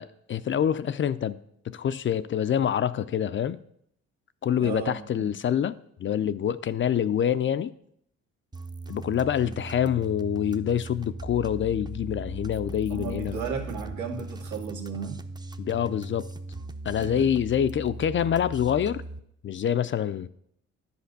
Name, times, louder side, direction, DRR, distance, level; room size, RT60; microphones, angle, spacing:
voice 1, 0.0-1.4 1.7-3.6 4.4-5.7 6.0-7.7 8.9-13.4 15.6-16.3 16.8-19.0 19.4-20.3, left 9 dB, 40° left, 0.4 m, -26 dB
voice 2, 4.6-5.4 9.5-9.6 12.9-15.2 16.9-17.3, right 6 dB, 75° right, 1.9 m, -35 dB
sound 1, 8.5-19.2, right 2 dB, 15° right, 0.6 m, -39 dB
10.5 x 5.0 x 6.6 m
cardioid pair, 90°, 30 cm